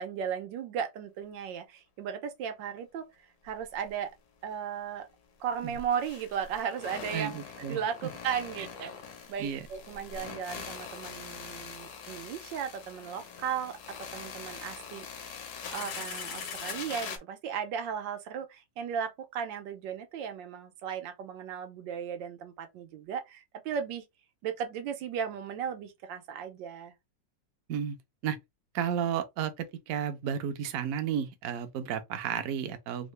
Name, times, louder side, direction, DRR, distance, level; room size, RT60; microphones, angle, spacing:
voice 1, 0.0-4.1 4.4-5.1 5.4-7.4 7.7-8.9 9.3-15.1 15.7-24.0 24.4-26.9, right 8 dB, 90° right, 1.4 m, -36 dB
sound 1, 3.5-3.6 3.9-4.0 5.5-17.2, left 6 dB, 65° left, 1.2 m, -42 dB
voice 2, 7.1-7.8 8.6-8.7 9.4-9.7 27.7-28.0 28.2-28.4 28.7-33.1, right 8 dB, 65° right, 0.9 m, -32 dB
3.7 x 2.1 x 3.1 m
omnidirectional pair, 2.0 m